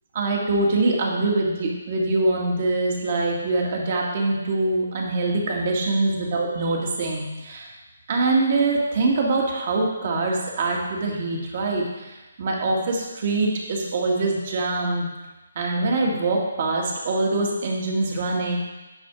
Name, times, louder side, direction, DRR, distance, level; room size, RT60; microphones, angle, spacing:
voice 1, 0.1-7.7 8.1-12.1 12.4-15.1 15.6-18.6, right 2 dB, 45° right, -1 dB, 2.0 m, -24 dB
10.0 x 4.3 x 6.2 m, 1.1 s
figure-of-eight pair, 145°, 0 cm